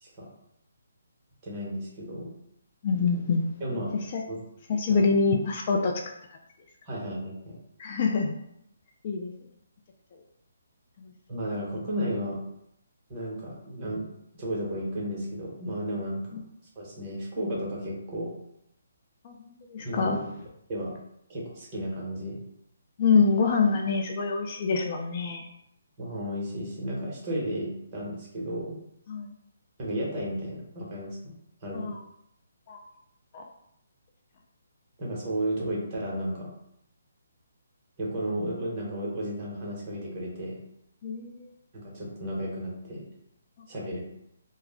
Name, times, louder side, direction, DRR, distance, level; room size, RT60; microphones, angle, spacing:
voice 1, 1.4-2.3 3.6-3.9 4.3-4.4 6.8-7.6 11.3-12.4 13.1-14.1 14.3-16.4 16.8-18.3 19.8-20.2 20.7-20.9 21.3-22.4 26.0-28.8 29.8-31.3 31.6-31.9 35.0-36.5 38.0-40.6 41.7-43.0 43.7-44.0, equal, 30° right, -4 dB, 1.0 m, -33 dB
voice 2, 2.8-3.5 4.1-4.2 4.7-6.0 7.8-8.4 9.0-9.3 11.0-11.1 19.2-20.3 23.0-25.5 29.1-29.3 31.7-32.0 32.7-32.8 33.3-33.4 41.0-41.5, left 4 dB, 35° left, 1 dB, 0.3 m, -25 dB
2.3 x 2.1 x 3.5 m, 0.78 s
hypercardioid pair, 155°, 0 cm